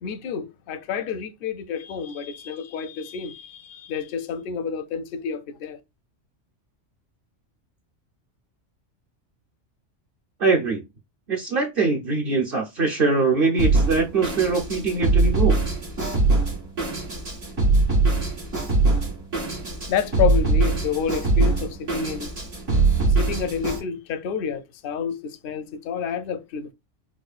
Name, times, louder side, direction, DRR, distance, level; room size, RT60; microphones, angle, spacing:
voice 1, 0.0-5.8 19.9-22.3 23.2-26.7, left 7 dB, 60° left, 0.6 m, -29 dB
voice 2, 10.4-10.8 11.3-15.6, right 4 dB, 55° right, 0.8 m, -22 dB
Drum kit, 13.6-23.8, right 3 dB, 85° right, 2.5 m, -22 dB
4.8 x 2.1 x 2.3 m
omnidirectional pair, 1.3 m